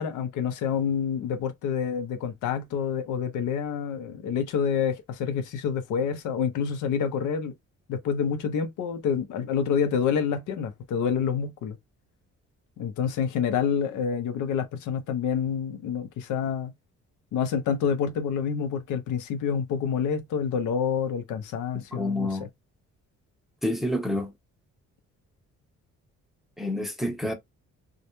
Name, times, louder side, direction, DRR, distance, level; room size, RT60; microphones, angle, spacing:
voice 1, 0.0-7.5 7.9-11.8 12.8-16.7 17.3-22.5, left 7 dB, 80° left, 0.7 m, -28 dB
voice 2, 21.9-22.5 23.6-24.3 26.6-27.3, left 1 dB, ahead, 0.6 m, -28 dB
2.3 x 2.0 x 2.9 m
cardioid pair, 90°, 30 cm